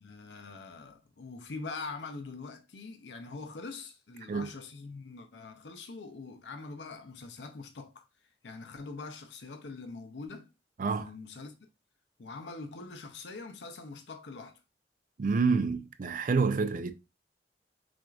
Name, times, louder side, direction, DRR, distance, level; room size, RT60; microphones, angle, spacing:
voice 1, 0.0-8.1 8.4-10.5 11.0-11.5 12.2-14.6, left 3 dB, 80° left, 0.6 m, -43 dB
voice 2, 10.8-11.1 15.2-16.9, right 4 dB, 50° right, 0.4 m, -28 dB
6.0 x 2.5 x 2.4 m
head